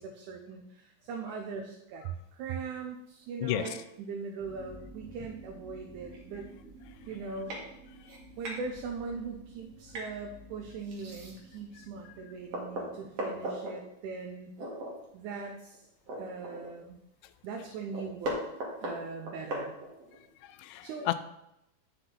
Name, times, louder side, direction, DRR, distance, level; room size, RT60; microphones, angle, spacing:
voice 1, 0.0-6.5 7.1-7.5 8.4-14.5 15.1-15.9 16.2-17.0 17.4-18.4 18.8-19.8 20.8-21.1, right 4 dB, 80° right, 2 dB, 2.2 m, -40 dB
voice 2, 3.4-3.8 20.4-21.1, left 14 dB, 80° left, 11 dB, 1.9 m, -32 dB
sound 1, 3.5-3.7 5.2-5.3 5.8-5.9 6.1-6.5 7.0-7.1 7.5-7.6 8.0-8.6 9.9-10.1 10.8-11.6 12.1-12.2 12.5-13.7 14.6-14.9 15.3-15.4 15.7-16.9 17.2-17.3 17.6-20.2, right 1 dB, 55° right, 2.7 m, -38 dB
sound 2, 4.4-13.2, right 2 dB, 10° right, 0.5 m, -52 dB
10.0 x 5.9 x 3.9 m, 0.83 s
omnidirectional pair, 3.6 m